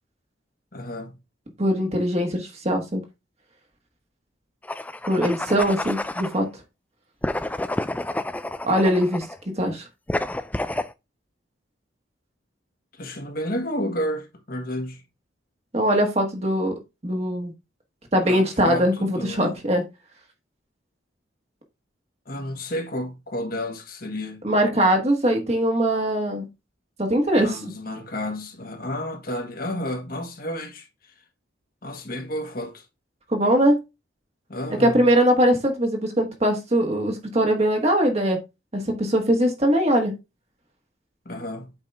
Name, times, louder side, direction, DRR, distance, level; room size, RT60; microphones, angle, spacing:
voice 1, 0.7-1.2 12.9-15.0 18.3-19.6 22.3-24.4 27.4-30.9 31.8-32.8 34.5-35.1 41.2-41.7, left 1 dB, 50° left, 1.6 m, -31 dB
voice 2, 1.6-3.0 5.1-6.5 8.6-9.3 9.6-9.9 15.7-16.7 17.0-17.5 18.1-19.8 24.4-26.5 27.0-27.6 33.3-33.8 34.8-38.4 38.7-40.1, equal, 30° right, 1.4 m, -21 dB
sound 1, 4.6-6.4 7.2-9.4 10.1-10.9, left 1 dB, 10° left, 0.3 m, -29 dB
8.3 x 4.8 x 3.4 m
head